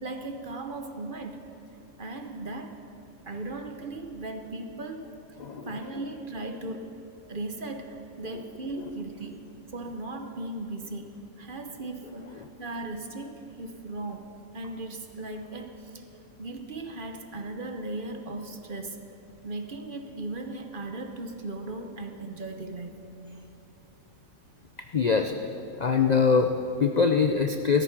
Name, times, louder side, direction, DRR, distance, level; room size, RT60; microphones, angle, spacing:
voice 1, 0.0-1.4 2.0-2.8 3.3-5.2 5.7-6.9 7.3-14.3 14.5-16.1 16.4-19.0 19.4-23.0, right 2 dB, 40° right, 6 dB, 1.0 m, -37 dB
voice 2, 5.4-5.7 24.9-25.3 25.8-27.8, left 5 dB, 60° left, 6 dB, 0.4 m, -23 dB
16.5 x 13.5 x 6.0 m, 2.9 s
omnidirectional pair, 1.5 m